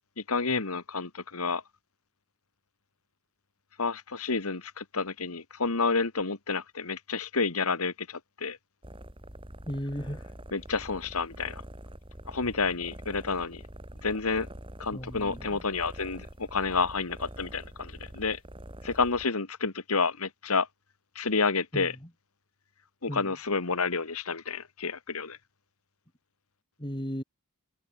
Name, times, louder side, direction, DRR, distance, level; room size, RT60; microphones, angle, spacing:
voice 1, 0.2-1.6 3.8-8.6 10.5-11.6 12.3-13.6 14.0-14.5 14.8-16.3 16.5-18.4 18.8-20.7 21.2-21.9 23.0-25.4, left 4 dB, 80° left, 1.8 m, -29 dB
sound 1, 8.8-19.3, right 1 dB, 25° right, 3.6 m, -45 dB
voice 2, 9.6-10.2 14.9-15.6 21.7-22.1 23.1-23.3 26.8-27.2, equal, 20° left, 6.8 m, -36 dB
head